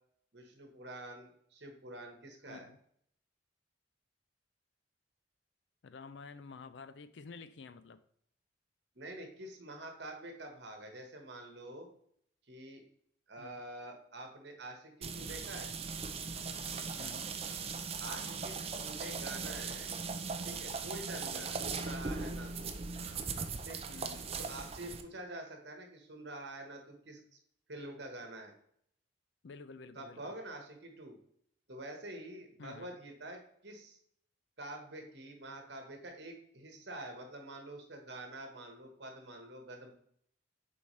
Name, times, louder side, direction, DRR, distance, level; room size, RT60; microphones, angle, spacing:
voice 1, 0.3-2.7 8.9-11.9 12.5-12.8 13.3-15.7 18.0-18.5 18.8-19.9 20.4-22.7 23.6-23.8 24.4-27.4 27.7-28.5 29.9-31.2 31.7-34.0 34.6-39.9, right 1 dB, 60° right, 3 dB, 1.3 m, -47 dB
voice 2, 2.5-2.8 5.8-8.0 13.4-13.6 17.0-17.3 21.3-21.5 23.9-24.3 29.4-30.3 32.6-33.0, left 4 dB, 65° left, 13 dB, 0.4 m, -50 dB
sound 1, 15.0-25.0, right 5 dB, 30° right, 0.5 m, -39 dB
7.1 x 4.3 x 3.2 m, 0.66 s
head